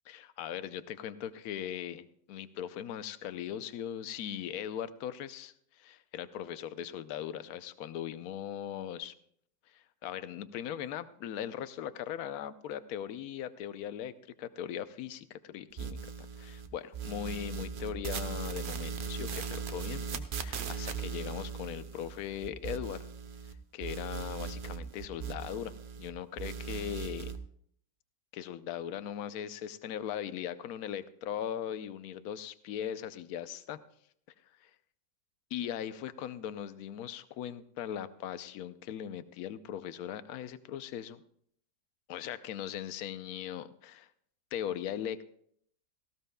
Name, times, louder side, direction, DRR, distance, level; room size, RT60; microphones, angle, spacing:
voice 1, 0.1-9.1 9.7-23.1 23.7-27.3 28.3-33.8 34.6-34.7 35.5-41.2 42.1-44.1 44.5-45.3, left 10 dB, 70° left, 12 dB, 1.0 m, -39 dB
sound 1, 15.8-16.7 16.9-23.5 23.8-26.1 26.4-27.4, right 6 dB, 75° right, 0.4 m, -38 dB
18.0 x 15.5 x 2.2 m, 0.66 s
omnidirectional pair, 1.9 m